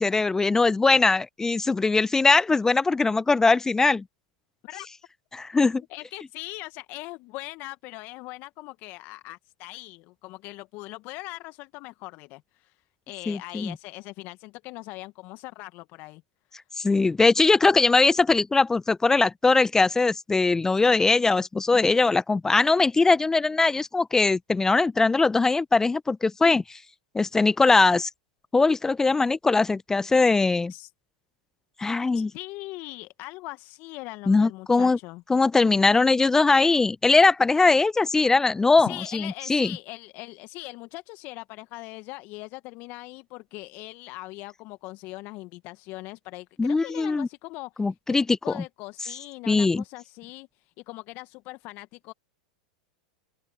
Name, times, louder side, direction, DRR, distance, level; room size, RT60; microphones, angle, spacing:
voice 1, 0.0-4.0 5.3-5.8 13.3-13.7 16.8-26.8 27.1-28.1 28.5-30.7 31.8-32.3 34.3-35.0 35.3-39.7 46.6-47.3 47.8-48.3 48.5-48.6 49.5-49.8, left 3 dB, 10° left, 0.5 m, -21 dB
voice 2, 5.9-12.8 13.1-16.2 30.7-30.9 32.1-35.2 38.8-50.5 50.9-52.1, left 21 dB, 50° left, 1.2 m, -40 dB
open air
hypercardioid pair, 95°, 4 cm